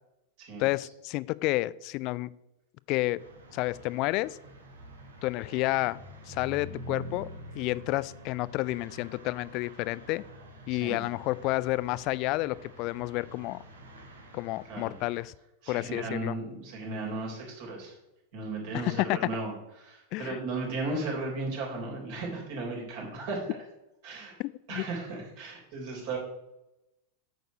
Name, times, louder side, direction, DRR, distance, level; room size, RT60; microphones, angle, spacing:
voice 1, 0.6-2.3 2.9-3.2 3.5-4.4 5.2-6.0 6.3-7.3 7.6-10.2 10.7-13.6 14.3-15.3 15.7-16.4 18.7-19.2 20.1-20.4 24.4-24.9, left 20 dB, 40° left, 19 dB, 0.3 m, -30 dB
sound 1, 3.2-15.2, right 1 dB, 70° right, 2.1 m, -47 dB
voice 2, 10.7-11.0 14.7-15.0 15.6-18.0 18.3-23.5 24.0-24.4 24.7-26.2, right 2 dB, 50° right, -1 dB, 3.8 m, -35 dB
9.0 x 6.5 x 5.2 m, 0.92 s
figure-of-eight pair, 90°, 0 cm